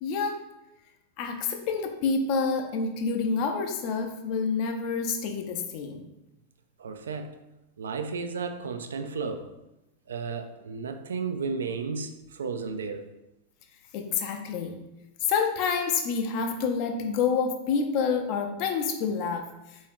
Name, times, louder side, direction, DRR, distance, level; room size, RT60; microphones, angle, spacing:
voice 1, 0.0-0.4 1.2-6.1 13.9-14.8 15.3-19.5, left 5 dB, 45° left, 4 dB, 0.6 m, -28 dB
voice 2, 6.8-7.3 7.8-9.5 10.1-13.1, right 5 dB, 65° right, 7 dB, 0.4 m, -33 dB
4.4 x 2.6 x 3.5 m, 0.94 s
figure-of-eight pair, 90°, 0 cm